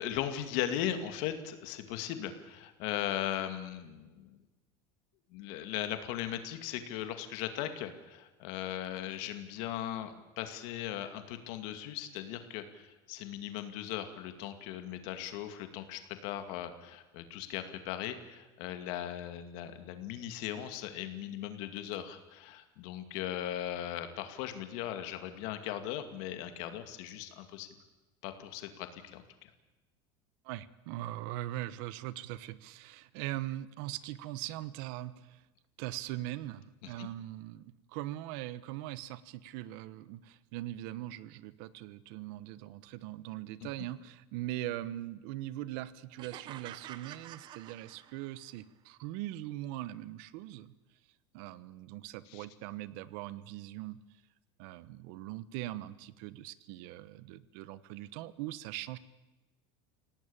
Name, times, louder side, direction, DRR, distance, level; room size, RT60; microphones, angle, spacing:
voice 1, 0.0-4.4 5.3-27.7 28.2-29.5 36.8-37.1 52.3-52.5, left 11 dB, 60° left, 8 dB, 2.3 m, -38 dB
voice 2, 30.4-35.4 35.8-50.7 51.3-54.0 54.6-59.0, right 15 dB, 60° right, 16 dB, 1.2 m, -41 dB
sound 1, 46.2-48.5, right 12 dB, 35° right, 0.9 m, -48 dB
28.0 x 18.0 x 8.8 m, 1.1 s
cardioid pair, 160°, 13 cm